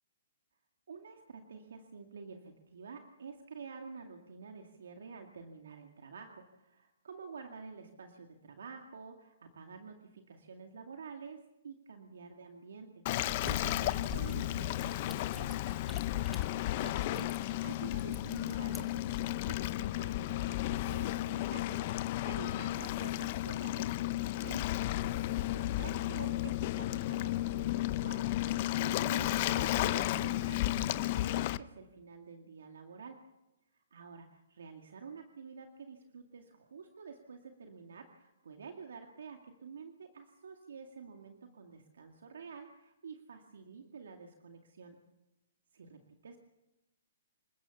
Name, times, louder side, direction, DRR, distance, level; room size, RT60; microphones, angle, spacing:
voice 1, 0.9-16.0 16.8-24.8 25.5-33.2 33.7-45.0 45.7-46.4, right 5 dB, 75° right, 4 dB, 2.1 m, -49 dB
Waves surf, 13.1-31.6, left 15 dB, 45° left, 0.7 m, -33 dB
sound 1, 13.3-19.5, left 2 dB, ahead, 1.9 m, -49 dB
27.5 x 14.5 x 7.1 m, 0.98 s
hypercardioid pair, 140°, 0 cm